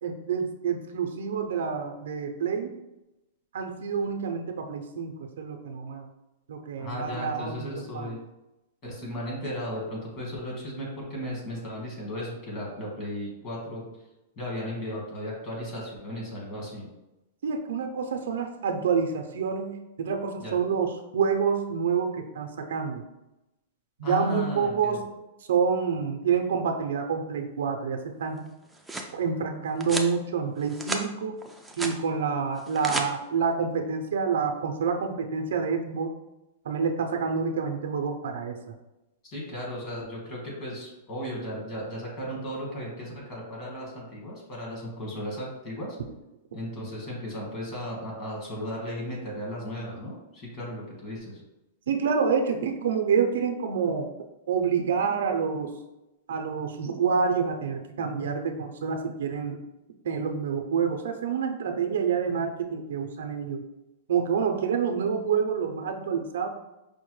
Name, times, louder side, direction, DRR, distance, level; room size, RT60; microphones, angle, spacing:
voice 1, 0.0-2.8 3.5-6.1 6.5-7.7 7.9-8.2 17.4-23.0 24.0-25.0 25.5-28.4 29.1-31.4 31.8-36.1 36.6-38.6 51.9-54.1 54.5-55.7 56.3-59.6 60.0-63.6 64.1-66.5, right 6 dB, 80° right, 5 dB, 0.5 m, -28 dB
voice 2, 6.8-8.2 8.8-13.9 14.4-16.9 20.4-20.5 24.0-25.0 39.2-46.0 46.5-51.4, left 1 dB, 35° left, -3 dB, 1.5 m, -35 dB
sound 1, 28.5-29.1 29.8-30.1 30.6-31.1 31.4-32.0 32.6-33.1, right 2 dB, 5° right, 0.3 m, -33 dB
5.2 x 2.1 x 3.1 m, 0.96 s
supercardioid pair, 150°, 0 cm